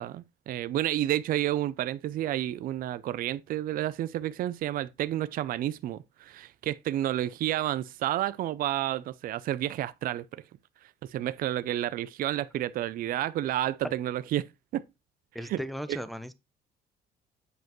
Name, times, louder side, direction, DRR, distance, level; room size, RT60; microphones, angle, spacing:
voice 1, 0.0-10.4 11.1-14.5 14.7-14.8 15.5-15.6 15.9-16.0, right 13 dB, 55° right, 0.4 m, -30 dB
voice 2, 15.3-16.3, equal, ahead, 0.6 m, -36 dB
8.0 x 5.1 x 3.0 m
cardioid pair, 110°, 17 cm